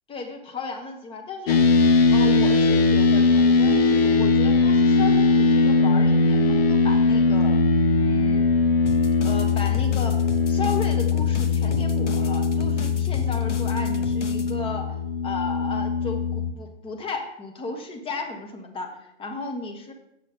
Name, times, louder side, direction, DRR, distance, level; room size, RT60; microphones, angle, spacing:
voice 1, 0.1-1.6 2.1-7.6 8.0-8.5 9.2-10.2 10.5-14.9 15.2-19.9, left 3 dB, 15° left, 3 dB, 1.2 m, -34 dB
sound 1, 1.5-16.5, left 4 dB, 60° left, 1.2 m, -20 dB
sound 2, 8.9-14.5, left 4 dB, 90° left, 0.9 m, -38 dB
7.7 x 6.2 x 5.1 m, 0.83 s
hypercardioid pair, 115°, 35 cm